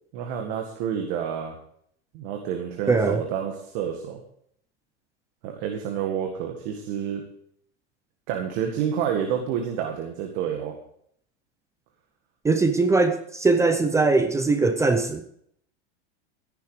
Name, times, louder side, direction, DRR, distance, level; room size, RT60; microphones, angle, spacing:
voice 1, 0.1-1.5 2.1-4.2 5.4-7.2 8.3-10.7, right 8 dB, 50° right, 2 dB, 2.0 m, -29 dB
voice 2, 2.9-3.2 12.4-15.2, right 3 dB, 10° right, 9 dB, 0.6 m, -21 dB
14.0 x 11.0 x 5.0 m, 0.67 s
supercardioid pair, 165°, 35 cm